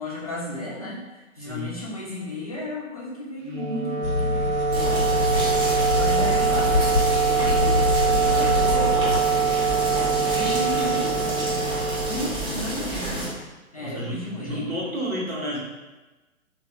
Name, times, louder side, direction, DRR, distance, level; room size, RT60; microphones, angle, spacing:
voice 1, 0.0-5.2 5.9-6.8 7.3-9.0 10.2-11.7 12.0-13.3 13.7-14.8, left 1 dB, 30° left, -6 dB, 0.4 m, -34 dB
Wind instrument woodwind instrument, 3.4-12.8, right 6 dB, 40° right, 0.4 m, -24 dB
sound 1, 4.0-9.2, left 4 dB, 90° left, 0.5 m, -26 dB
sound 2, 4.7-13.3, right 1 dB, 10° right, 0.7 m, -29 dB
voice 2, 13.8-15.6, equal, 80° right, -4 dB, 1.2 m, -31 dB
3.4 x 2.4 x 2.9 m, 1.2 s
figure-of-eight pair, 125°, 41 cm